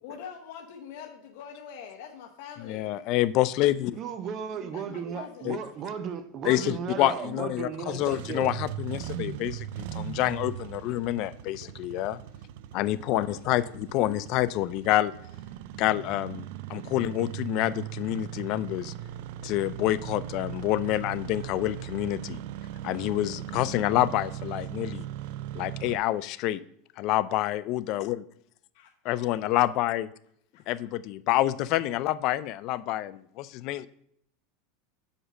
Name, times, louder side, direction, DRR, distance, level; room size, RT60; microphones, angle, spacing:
voice 1, 0.0-3.0 4.7-5.5 11.0-11.1 11.6-11.7 13.2-13.3 13.9-14.2 28.7-29.6 30.5-30.6, left 8 dB, 65° left, 0.8 m, -44 dB
voice 2, 2.6-4.0 5.4-5.6 6.4-12.2 12.7-15.1 15.8-18.9 19.4-22.4 22.8-25.0 25.6-26.6 27.0-28.2 29.0-30.1 30.7-33.9, left 14 dB, 50° left, 0.3 m, -27 dB
voice 3, 3.9-8.5, right 7 dB, 35° right, 0.6 m, -35 dB
Engine starting, 7.8-26.0, right 12 dB, 65° right, 0.3 m, -39 dB
6.2 x 5.1 x 4.9 m
supercardioid pair, 145°, 0 cm